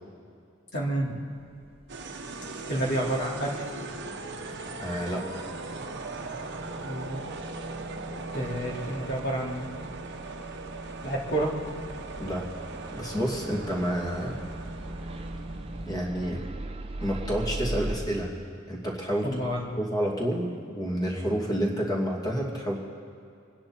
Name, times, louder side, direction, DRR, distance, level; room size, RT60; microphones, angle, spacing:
voice 1, 0.7-1.2 2.7-3.6 6.8-7.2 8.3-9.9 11.0-11.6 19.2-19.7, right 1 dB, 55° left, -3 dB, 2.8 m, -30 dB
sound 1, 1.4-18.0, right 2 dB, 30° right, 0.8 m, -42 dB
sound 2, 1.9-16.1, right 2 dB, 55° right, 1.2 m, -39 dB
voice 2, 4.8-5.5 12.2-12.4 12.9-14.4 15.9-16.4 17.0-18.3 18.7-19.4 19.8-22.8, equal, 20° left, -2 dB, 2.6 m, -29 dB
26.5 x 10.0 x 4.5 m, 2.5 s
head